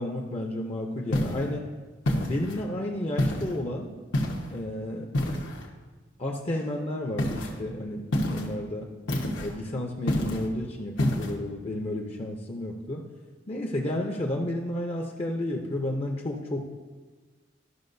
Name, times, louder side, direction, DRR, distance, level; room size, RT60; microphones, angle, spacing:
voice 1, 0.0-1.6 2.1-3.9 4.5-5.0 6.2-8.9 9.4-13.0 13.5-16.6, left 1 dB, 30° left, 1 dB, 0.6 m, -32 dB
sound 1, 1.1-1.5 2.1-2.6 3.2-3.6 4.1-4.6 5.1-5.7 7.2-7.5 8.1-8.5 9.1-9.5 10.1-10.5 11.0-11.3, left 1 dB, 80° left, 1.1 m, -28 dB
12.5 x 5.9 x 2.6 m, 1.3 s
head